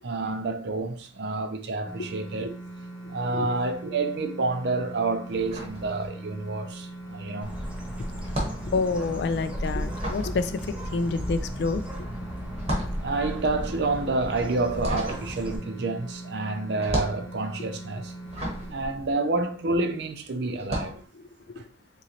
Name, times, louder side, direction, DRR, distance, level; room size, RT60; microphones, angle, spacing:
voice 1, 0.0-2.5 3.1-7.5 13.0-18.1 18.7-21.0 21.6-21.7, right 3 dB, 60° right, 0.5 m, -29 dB
sound 1, 1.8-18.7, right 2 dB, 10° left, 1.1 m, -41 dB
sound 2, 5.3-6.5 6.8-20.0 20.5-21.0, equal, 35° right, 0.9 m, -35 dB
Bird, 7.4-15.6, equal, 5° right, 0.5 m, -35 dB
voice 2, 8.4-12.1 21.1-21.6, left 4 dB, 60° left, 0.3 m, -29 dB
3.8 x 3.0 x 2.9 m
head